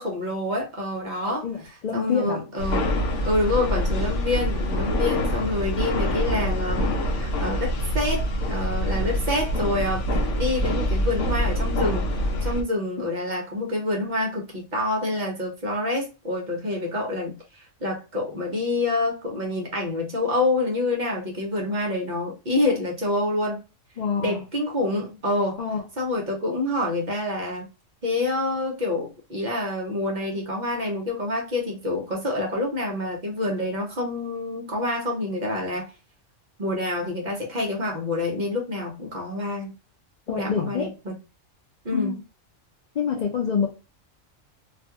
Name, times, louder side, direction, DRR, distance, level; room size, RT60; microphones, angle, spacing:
voice 1, 0.0-1.5 1.9-2.9 3.2-23.6 24.2-25.6 26.0-27.7 28.0-35.9 36.6-39.7 40.3-41.1 41.8-42.2, left 2 dB, 45° right, 0.6 m, -27 dB
voice 2, 1.3-2.4 24.0-24.5 25.6-25.8 40.3-40.9 41.9-42.1 42.9-43.7, left 6 dB, 85° left, 0.3 m, -26 dB
sound 1, 2.6-12.6, equal, 70° left, 0.9 m, -25 dB
2.4 x 2.2 x 2.7 m
omnidirectional pair, 1.3 m